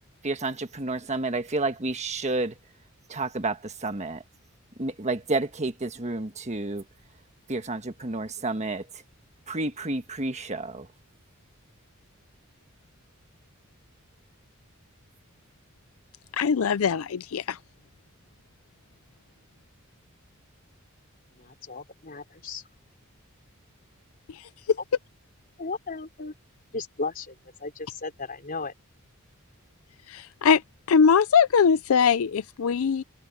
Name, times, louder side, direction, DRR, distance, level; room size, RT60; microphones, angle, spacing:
voice 1, 0.2-2.5 3.1-4.2 4.8-6.8 7.5-8.9 9.5-10.9, right 2 dB, 35° right, 1.4 m, -30 dB
voice 2, 16.3-17.6 24.3-24.5 30.1-30.6 30.9-33.0, left 6 dB, 70° left, 0.5 m, -21 dB
voice 3, 21.4-22.6 25.6-26.3 26.7-27.3 27.6-28.7, left 3 dB, 45° left, 4.3 m, -35 dB
head